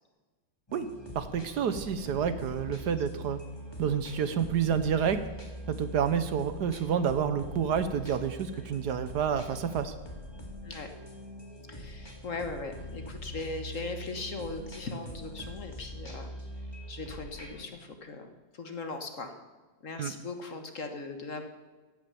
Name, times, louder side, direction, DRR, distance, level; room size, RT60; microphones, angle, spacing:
sound 1, 0.7-17.7, equal, 15° left, 2.0 m, -43 dB
voice 1, 1.1-3.4 3.8-5.2 5.7-9.9 20.0-20.1, right 7 dB, 65° right, 11 dB, 1.3 m, -29 dB
voice 2, 11.7-16.3 16.9-19.3 19.8-21.4, left 3 dB, 45° left, 6 dB, 1.5 m, -39 dB
15.5 x 9.0 x 6.9 m, 1.3 s
omnidirectional pair, 2.0 m